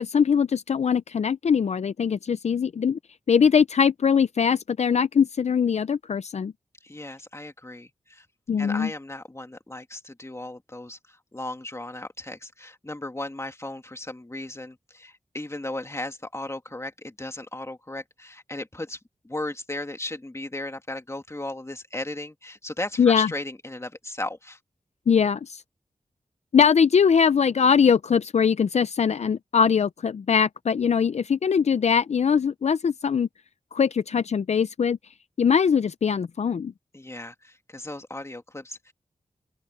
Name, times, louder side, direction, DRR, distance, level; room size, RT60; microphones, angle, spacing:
voice 1, 0.0-3.0 3.3-6.5 8.5-8.9 23.0-23.3 25.1-25.6 26.5-33.3 33.7-35.0 35.4-36.7, left 6 dB, 65° left, 0.5 m, -21 dB
voice 2, 6.8-8.3 8.6-19.0 19.2-24.6 36.9-38.9, left 2 dB, 25° left, 2.6 m, -36 dB
open air
cardioid pair, 50°, 12 cm